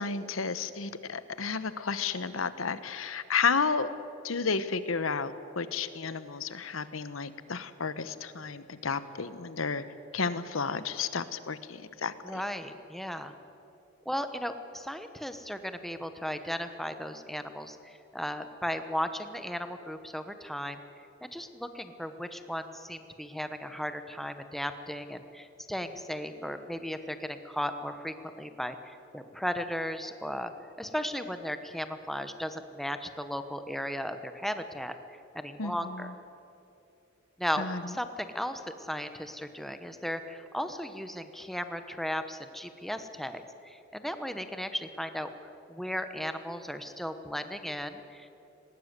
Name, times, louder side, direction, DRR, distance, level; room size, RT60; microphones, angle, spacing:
voice 1, 0.0-3.9 4.2-9.8 10.1-12.4 35.6-36.1 37.6-37.9, left 5 dB, 80° left, 13 dB, 1.0 m, -32 dB
voice 2, 12.2-13.3 14.0-20.8 21.2-30.5 30.8-36.1 37.4-45.3 45.7-48.3, equal, ahead, 8 dB, 1.0 m, -36 dB
19.0 x 18.0 x 8.2 m, 2.7 s
head